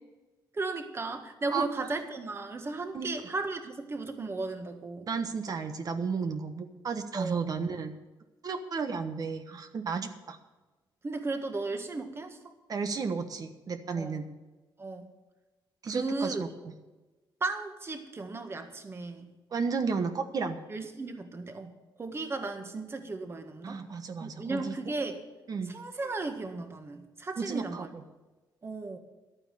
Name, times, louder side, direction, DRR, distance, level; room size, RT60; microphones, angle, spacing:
voice 1, 0.5-5.1 7.1-7.4 11.0-12.5 13.9-14.2 14.8-15.1 15.9-16.4 17.4-19.3 20.7-23.8 24.2-25.2 25.7-27.9 28.6-29.0, right 3 dB, 30° right, 6 dB, 1.6 m, -35 dB
voice 2, 5.1-7.9 8.4-10.4 12.7-14.3 15.8-16.5 19.5-20.6 23.6-24.7 25.5-25.8 27.4-28.0, right 5 dB, 50° right, 7 dB, 1.2 m, -33 dB
12.0 x 8.9 x 6.9 m, 1.2 s
cardioid pair, 110°, 8 cm